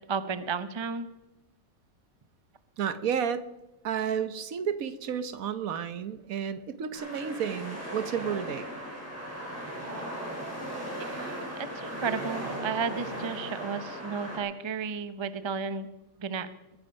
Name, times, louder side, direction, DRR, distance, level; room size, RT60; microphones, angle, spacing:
voice 1, 0.1-1.1 11.0-15.9 16.2-16.5, right 6 dB, 30° right, 12 dB, 0.5 m, -33 dB
voice 2, 2.8-3.4 3.8-8.7, right 8 dB, 65° right, 13 dB, 1.3 m, -31 dB
sound 1, 6.9-14.4, equal, 10° right, 4.7 m, -37 dB
21.5 x 11.0 x 5.3 m, 0.98 s
omnidirectional pair, 1.6 m